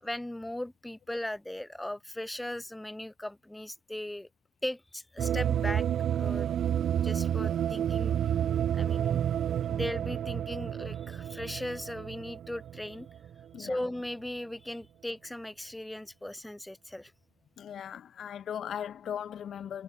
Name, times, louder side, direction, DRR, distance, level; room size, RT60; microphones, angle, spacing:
voice 1, 0.0-4.3 4.6-5.9 6.1-6.5 7.0-8.1 8.7-9.2 9.7-13.1 13.6-17.1, left 1 dB, 10° left, 2.0 m, -38 dB
sound 1, 5.2-13.4, right 10 dB, 60° right, 1.1 m, -30 dB
voice 2, 17.6-19.8, left 9 dB, 60° left, 0.9 m, -38 dB
supercardioid pair, 80°, 0 cm